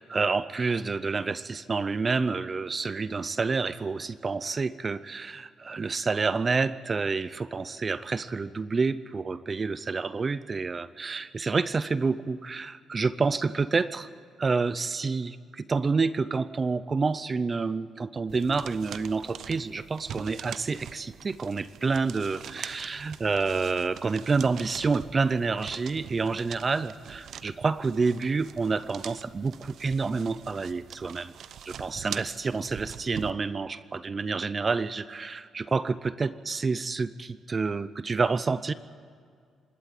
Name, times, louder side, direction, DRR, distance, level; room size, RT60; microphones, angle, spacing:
voice 1, 0.0-14.1 14.4-31.3 31.6-38.7, right 4 dB, 30° right, 15 dB, 0.5 m, -28 dB
sound 1, 18.3-33.3, right 9 dB, 65° right, 0.7 m, -44 dB
26.5 x 12.0 x 9.2 m, 2.2 s
cardioid pair, 130°, 0 cm